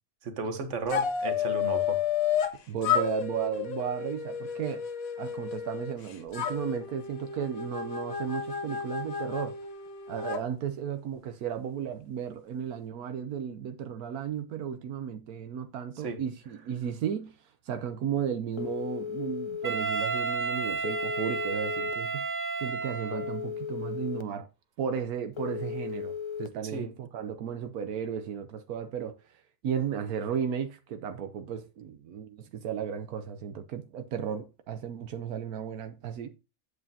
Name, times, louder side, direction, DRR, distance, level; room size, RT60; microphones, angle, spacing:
voice 1, 0.2-2.0 16.0-16.2 26.6-26.9, right 4 dB, 55° right, 1.6 m, -34 dB
sound 1, 0.9-2.6 2.8-5.9 6.3-10.4, left 8 dB, 70° left, 1.4 m, -31 dB
voice 2, 2.7-4.8 5.2-9.5 10.1-17.4 17.6-22.3 22.6-24.5 24.8-36.3, right 8 dB, 85° right, 1.3 m, -34 dB
Telephone, 18.6-19.7 20.8-21.9 23.1-24.2 25.4-26.5, left 7 dB, 35° left, 0.4 m, -36 dB
Wind instrument woodwind instrument, 19.6-23.5, right 4 dB, 40° right, 0.8 m, -32 dB
9.2 x 8.4 x 2.8 m
omnidirectional pair, 1.5 m